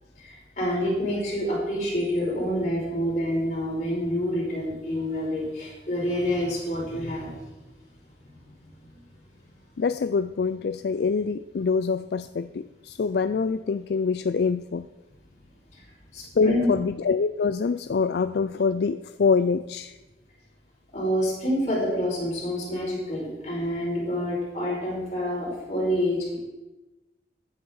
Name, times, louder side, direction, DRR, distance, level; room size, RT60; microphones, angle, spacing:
voice 1, 0.2-7.3 16.1-16.7 20.9-26.4, equal, 40° left, -4 dB, 5.5 m, -27 dB
voice 2, 9.8-14.9 16.4-20.0, left 5 dB, 65° left, 12 dB, 0.4 m, -25 dB
15.0 x 9.8 x 4.8 m, 1.1 s
head